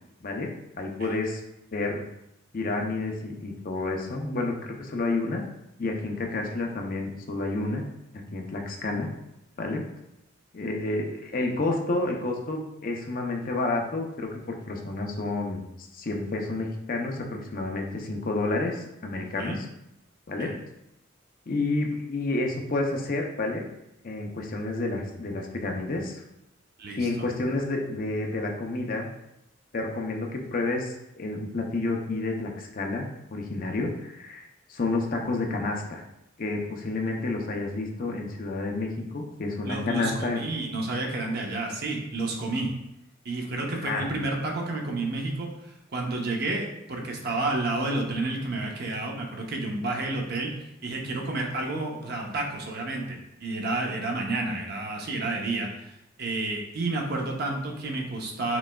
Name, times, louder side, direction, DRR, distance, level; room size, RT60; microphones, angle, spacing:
voice 1, 0.8-1.4 1.7-2.0 2.5-5.4 5.8-7.8 8.3-9.1 9.6-9.8 10.5-15.6 15.9-19.7 20.3-20.5 21.5-23.6 24.0-26.2 27.0-29.1 29.7-33.1 33.3-36.0 36.4-40.4 43.8-44.1, left 2 dB, 45° left, 1 dB, 0.6 m, -30 dB
voice 2, 19.2-19.6 20.4-20.6 26.8-27.1 39.6-42.7 43.2-45.5 45.9-50.5 50.8-55.9 56.2-58.6, right 2 dB, 50° right, 1 dB, 0.7 m, -30 dB
6.0 x 3.3 x 2.2 m, 0.87 s
head